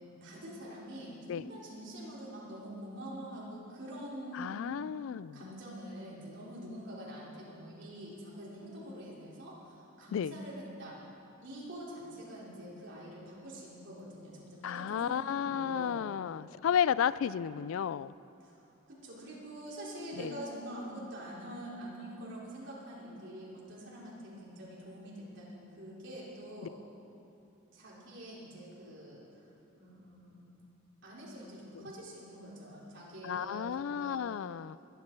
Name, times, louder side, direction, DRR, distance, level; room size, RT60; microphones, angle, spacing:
voice 1, 0.1-4.8 5.3-11.0 11.4-16.1 18.4-26.8 27.7-29.2 29.8-30.5 31.0-34.3, equal, 60° right, -6 dB, 3.8 m, -45 dB
voice 2, 4.3-5.4 10.1-10.4 14.6-18.1 20.2-20.4 31.7-31.9 33.2-34.8, left 8 dB, 75° left, 18 dB, 0.3 m, -33 dB
21.5 x 10.5 x 4.6 m, 2.7 s
head